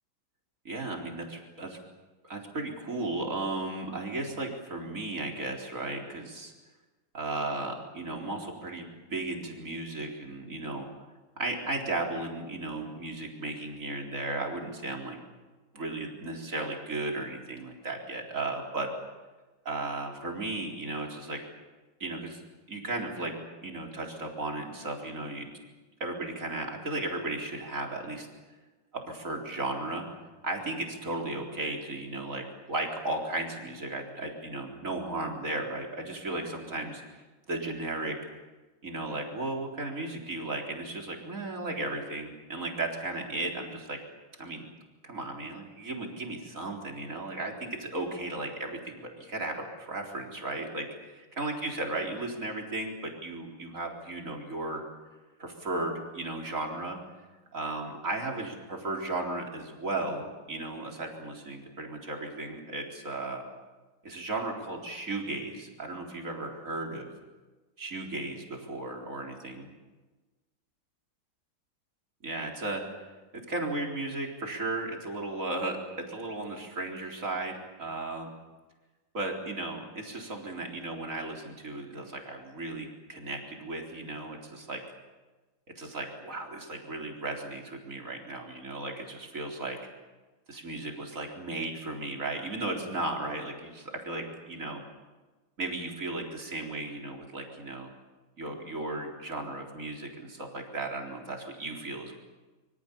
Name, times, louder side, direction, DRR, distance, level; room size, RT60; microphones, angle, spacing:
voice 1, 0.6-1.8 2.2-6.5 7.1-10.9 11.4-15.2 15.7-18.9 19.6-21.4 22.0-22.4 22.7-23.3 23.6-25.5 26.0-28.3 28.9-30.1 30.4-38.2 38.8-44.0 44.4-44.7 45.0-54.8 55.4-57.0 57.5-63.4 64.0-67.1 67.8-69.7 72.2-72.8 73.5-75.8 76.1-78.3 79.1-84.8 85.8-89.8 90.5-94.8 95.6-97.9 98.4-102.1, right 2 dB, 40° right, 1 dB, 4.4 m, -35 dB
26.0 x 24.5 x 7.0 m, 1.2 s
omnidirectional pair, 2.2 m